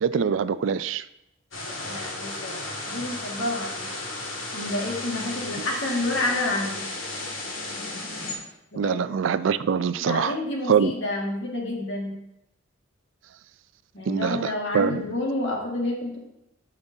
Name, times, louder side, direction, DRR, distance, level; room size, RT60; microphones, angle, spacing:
voice 1, 0.0-1.0 5.6-5.7 8.8-10.3 10.7-10.9 14.1-15.0, right 7 dB, 70° right, 14 dB, 0.4 m, -24 dB
sound 1, 1.5-8.4, left 2 dB, 90° left, 1.9 m, -34 dB
voice 2, 1.8-3.9 4.5-6.9 8.7-9.0 10.1-12.2 13.9-16.3, left 2 dB, 65° left, -1 dB, 1.8 m, -29 dB
12.5 x 5.2 x 2.7 m, 0.85 s
head